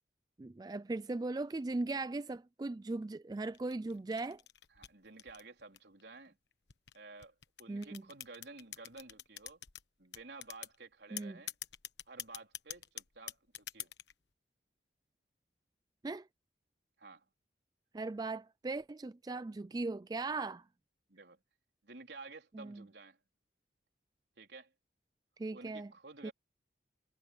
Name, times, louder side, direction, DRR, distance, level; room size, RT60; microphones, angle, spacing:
voice 1, 0.4-4.4 7.7-8.0 11.1-11.4 16.0-16.3 17.9-20.6 22.5-22.8 25.4-25.9 26.2-26.3, right 3 dB, 20° right, 0.3 m, -38 dB
sound 1, 3.5-6.0 6.7-9.8 10.1-10.8 11.2-14.1, left 13 dB, 75° left, 1.2 m, -45 dB
voice 2, 4.8-6.3 6.9-9.6 10.0-11.5 12.1-13.9 17.0-17.3 21.1-21.4 21.8-23.2 24.4-24.7 25.5-26.3, right 3 dB, 70° right, 4.0 m, -52 dB
head